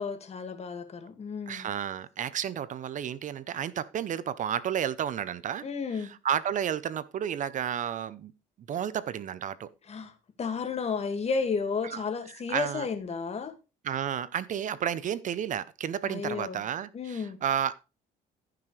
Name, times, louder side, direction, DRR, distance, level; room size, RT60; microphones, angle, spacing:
voice 1, 0.0-1.7 5.6-6.1 9.9-10.1 10.4-13.5 16.0-16.6 16.9-17.4, left 5 dB, 40° left, 2.0 m, -32 dB
voice 2, 1.5-5.6 5.9-8.3 8.7-9.7 11.9-12.9 13.8-17.7, right 9 dB, 50° right, 0.7 m, -32 dB
15.0 x 6.1 x 3.2 m
cardioid pair, 110°, 17 cm